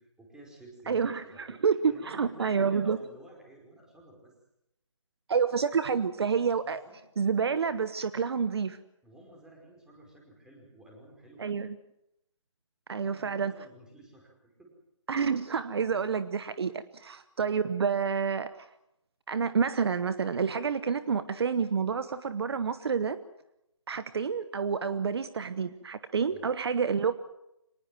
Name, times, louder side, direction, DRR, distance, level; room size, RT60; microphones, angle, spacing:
voice 1, 0.0-1.6 1.9-4.3 6.8-7.0 9.0-11.5 13.0-14.7 17.0-17.1 26.3-26.4, right 1 dB, 5° right, -1 dB, 4.9 m, -53 dB
voice 2, 0.9-1.8 2.0-3.0 5.3-6.8 7.2-8.8 11.4-11.8 12.9-13.5 15.1-18.7 19.3-23.2 23.9-27.1, right 6 dB, 55° right, 13 dB, 1.0 m, -29 dB
25.0 x 19.5 x 7.6 m, 0.83 s
figure-of-eight pair, 155°, 17 cm